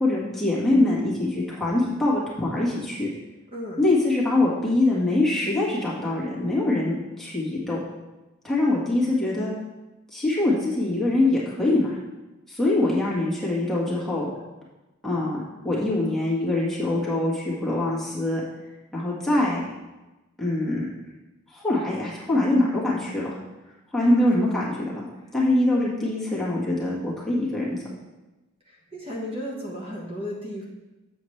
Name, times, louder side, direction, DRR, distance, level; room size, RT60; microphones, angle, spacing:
voice 1, 0.0-3.1 3.8-7.8 8.4-9.5 10.1-12.0 12.5-14.3 15.0-15.4 15.6-18.4 18.9-19.6 20.4-20.9 21.5-23.4 23.9-25.0 25.3-27.8, left 2 dB, ahead, -7 dB, 1.7 m, -23 dB
voice 2, 28.7-30.6, left 1 dB, 25° right, -3 dB, 1.3 m, -34 dB
7.8 x 7.2 x 3.3 m, 1.1 s
head